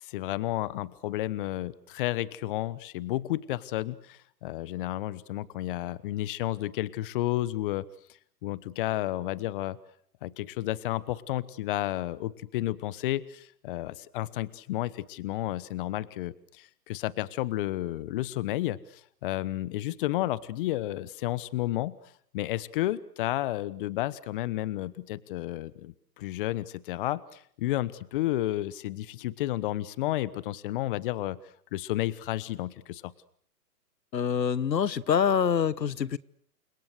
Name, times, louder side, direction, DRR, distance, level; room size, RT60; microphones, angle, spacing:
voice 1, 0.0-7.8 8.4-9.8 10.2-22.0 22.3-31.4 31.7-33.1, left 15 dB, 30° left, 1.1 m, -32 dB
voice 2, 34.1-36.2, left 7 dB, 85° left, 1.2 m, -25 dB
29.5 x 26.0 x 6.7 m
hypercardioid pair, 140°, 49 cm